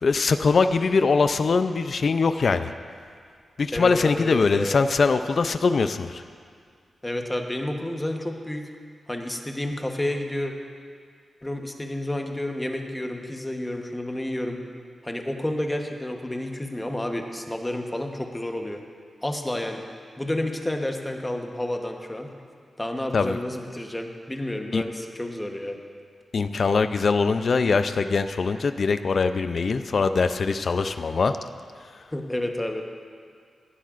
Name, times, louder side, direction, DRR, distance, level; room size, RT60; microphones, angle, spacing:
voice 1, 0.0-2.7 3.6-6.2 23.1-23.4 24.7-24.8 26.3-31.4, left 4 dB, 55° left, 10 dB, 0.4 m, -22 dB
voice 2, 3.7-4.8 7.0-8.7 9.1-10.5 11.4-14.6 15.0-18.8 19.2-19.8 20.2-22.3 22.8-25.8 32.1-32.8, left 1 dB, 10° left, 3 dB, 1.0 m, -30 dB
18.5 x 11.5 x 2.5 m, 2.1 s
wide cardioid pair, 105°, 0 cm